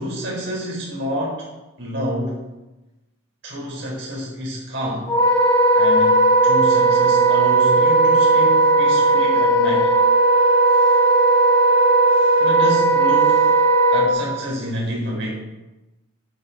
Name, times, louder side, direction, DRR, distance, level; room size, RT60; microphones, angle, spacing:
voice 1, 0.0-1.5 1.8-2.4 3.4-5.1 5.7-9.9 12.2-13.6 13.9-15.3, equal, 55° right, -3 dB, 4.5 m, -28 dB
Wind instrument woodwind instrument, 5.1-14.1, right 2 dB, 20° left, 4.4 m, -16 dB
11.5 x 7.1 x 6.4 m, 1.0 s
head